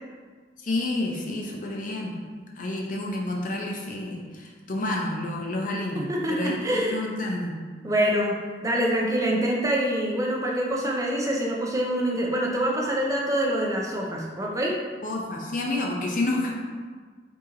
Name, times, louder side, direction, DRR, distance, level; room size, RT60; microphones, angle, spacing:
voice 1, 0.6-2.2 2.6-7.5 15.0-16.5, left 2 dB, 45° left, -1 dB, 0.6 m, -29 dB
voice 2, 6.0-7.0 7.8-14.8, equal, 15° right, -2 dB, 0.5 m, -25 dB
3.9 x 2.9 x 3.8 m, 1.5 s
head